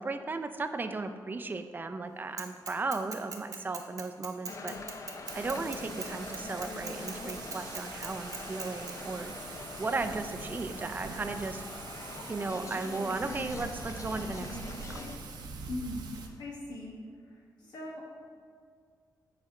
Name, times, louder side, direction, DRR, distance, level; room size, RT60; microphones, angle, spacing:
voice 1, 0.0-4.8 5.3-9.3 9.8-11.6 12.3-15.0, right 3 dB, 25° right, 8 dB, 0.4 m, -36 dB
Bicycle / Mechanisms, 2.4-8.9, right 5 dB, 50° right, 0.9 m, -41 dB
sound 1, 4.5-15.2, left 3 dB, 45° left, 0.6 m, -43 dB
Thunder / Rain, 5.3-16.3, right 4 dB, 90° right, 0.8 m, -44 dB
voice 2, 15.7-16.1 16.4-16.9 17.6-18.1, left 2 dB, 80° left, -3 dB, 1.3 m, -39 dB
7.8 x 4.3 x 4.9 m, 2.1 s
cardioid pair, 115°, 7 cm